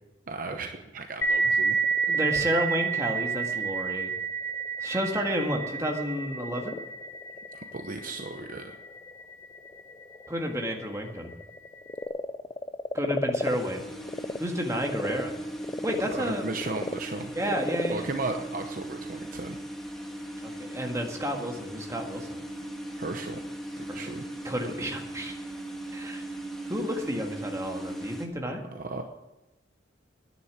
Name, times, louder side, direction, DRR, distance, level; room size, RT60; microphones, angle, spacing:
voice 1, 0.3-1.8 7.5-8.7 16.1-17.3 17.9-19.6 22.9-23.4 23.8-24.3 24.6-24.7 28.7-29.0, right 3 dB, 45° right, 5 dB, 0.8 m, -35 dB
sound 1, 1.2-10.5, right 5 dB, 85° left, 1.4 m, -31 dB
Frog, 1.5-14.4 14.7-19.4, left 2 dB, 20° left, 0.4 m, -37 dB
voice 2, 2.1-4.1 4.8-6.8 10.3-11.3 12.9-13.9 14.4-15.3 15.8-16.4 17.3-18.1 20.4-22.3 23.9-24.1 24.4-25.4 25.9-26.2 26.7-28.6, equal, 15° right, 2 dB, 1.8 m, -31 dB
sound 2, 13.4-28.3, right 1 dB, ahead, 1.6 m, -38 dB
10.5 x 9.9 x 9.8 m, 1.0 s
head